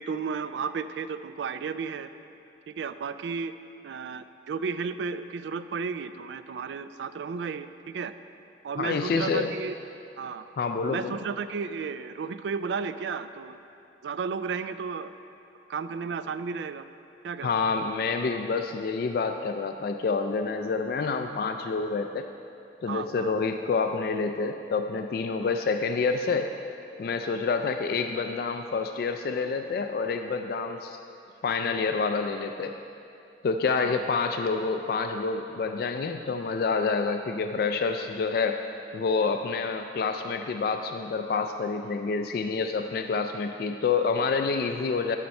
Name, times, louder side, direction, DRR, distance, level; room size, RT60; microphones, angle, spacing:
voice 1, 0.0-2.1 2.7-3.5 3.8-8.1 8.6-9.7 10.2-10.4 10.9-13.6 14.0-15.2 15.7-16.8 17.2-17.5 22.9-23.4 25.5-25.6 33.7-34.0, right 5 dB, 80° right, 12 dB, 0.3 m, -33 dB
voice 2, 8.8-9.5 10.6-11.2 17.4-22.3 22.8-26.5 27.0-31.0 31.4-32.7 33.4-38.6 38.9-45.2, left 4 dB, 55° left, 6 dB, 0.3 m, -28 dB
12.0 x 5.7 x 4.2 m, 2.7 s
head